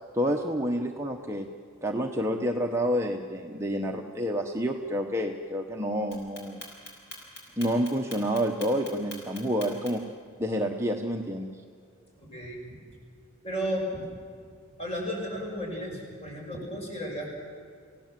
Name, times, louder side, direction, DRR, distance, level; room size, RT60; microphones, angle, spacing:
voice 1, 0.1-1.5 1.8-6.6 7.6-10.0 10.4-11.6, equal, 10° right, 2 dB, 1.0 m, -29 dB
Clock, 6.1-10.1, left 1 dB, 50° left, 6.3 m, -43 dB
voice 2, 12.1-12.8 13.4-14.1 14.8-17.3, equal, 30° left, 0 dB, 6.4 m, -34 dB
29.0 x 17.0 x 7.5 m, 2.2 s
head